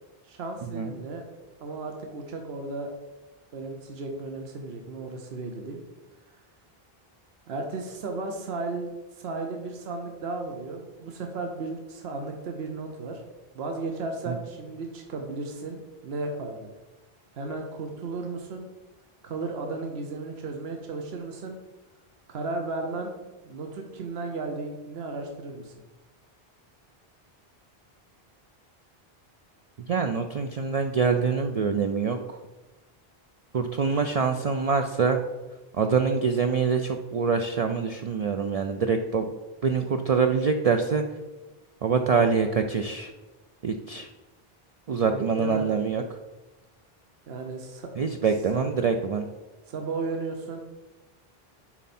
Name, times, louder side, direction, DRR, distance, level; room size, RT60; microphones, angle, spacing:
voice 1, 0.2-1.2 1.6-2.9 3.5-5.8 7.5-13.2 13.5-16.7 17.3-18.7 19.2-21.6 22.3-23.2 23.4-25.7 44.9-45.9 47.3-47.9 49.7-50.6, right 3 dB, 80° right, 3 dB, 1.1 m, -34 dB
voice 2, 29.9-32.4 33.5-35.2 35.7-39.3 39.6-41.0 41.8-43.1 43.6-44.1 44.9-46.0 48.0-49.3, right 5 dB, 55° right, 5 dB, 0.4 m, -25 dB
7.2 x 4.7 x 4.2 m, 1.1 s
omnidirectional pair, 1.0 m